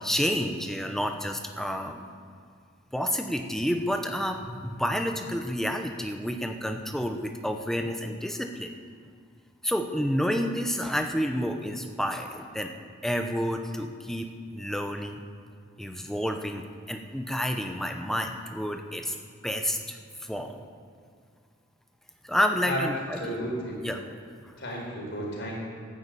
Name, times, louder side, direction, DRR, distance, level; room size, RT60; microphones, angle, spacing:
voice 1, 0.0-2.0 2.9-8.7 9.6-15.2 15.8-19.2 19.4-20.6 22.2-23.5 23.8-24.0 24.4-24.5, equal, ahead, 5 dB, 0.8 m, -30 dB
voice 2, 23.2-24.0 24.6-25.6, equal, 55° left, -2 dB, 4.3 m, -33 dB
12.0 x 10.0 x 8.4 m, 2.1 s
head